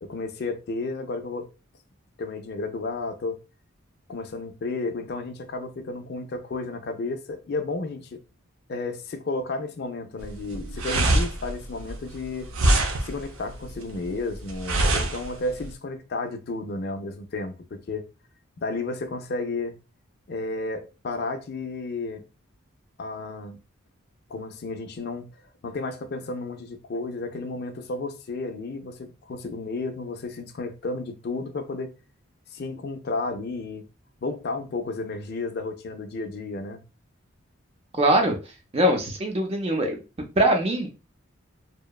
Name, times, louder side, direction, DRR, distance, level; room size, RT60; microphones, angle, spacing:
voice 1, 0.0-1.5 2.2-3.4 4.1-8.2 8.7-12.5 13.0-18.0 18.6-19.8 20.3-22.2 23.0-23.6 24.3-25.3 25.6-31.9 32.5-33.8 34.2-36.8, left 3 dB, 50° left, 0.4 m, -32 dB
sound 1, 10.2-15.7, right 1 dB, 85° right, 0.6 m, -25 dB
voice 2, 38.0-38.4 38.7-40.0 40.4-40.9, right 1 dB, 30° right, 0.5 m, -22 dB
2.8 x 2.1 x 2.2 m
head